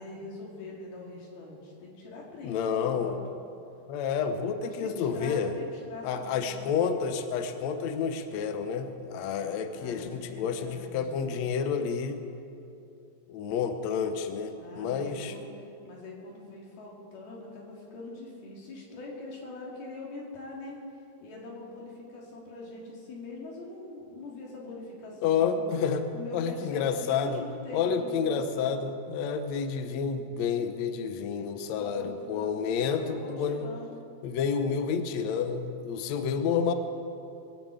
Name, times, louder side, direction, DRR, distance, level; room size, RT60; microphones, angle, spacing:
voice 1, 0.0-3.1 4.6-6.7 9.7-11.4 14.6-15.5 15.8-20.8 21.2-25.6 26.1-28.8 31.8-33.9, left 2 dB, 85° left, -3 dB, 4.7 m, -43 dB
voice 2, 2.4-3.2 3.9-5.5 6.0-12.2 13.3-15.3 25.2-26.1 26.3-27.5 27.7-33.7 34.2-36.7, left 6 dB, 70° left, 7 dB, 1.7 m, -29 dB
22.5 x 7.5 x 8.3 m, 2.7 s
omnidirectional pair, 4.3 m